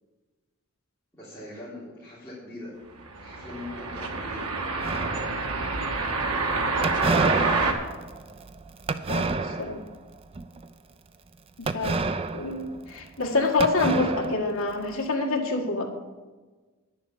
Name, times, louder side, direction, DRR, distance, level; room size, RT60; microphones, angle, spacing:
voice 1, 1.1-2.7 3.2-4.5 9.3-9.6, left 1 dB, 10° left, -12 dB, 3.7 m, -42 dB
sound 1, 3.0-7.7, right 3 dB, 90° right, 1.6 m, -27 dB
sound 2, 4.8-5.6 6.8-9.9 10.3-10.7 11.7-13.3 13.6-14.9, right 3 dB, 25° right, 0.4 m, -29 dB
voice 2, 9.1-9.8 11.6-12.0 12.3-15.9, left 3 dB, 65° left, 1 dB, 1.8 m, -27 dB
9.8 x 7.2 x 7.4 m, 1.3 s
head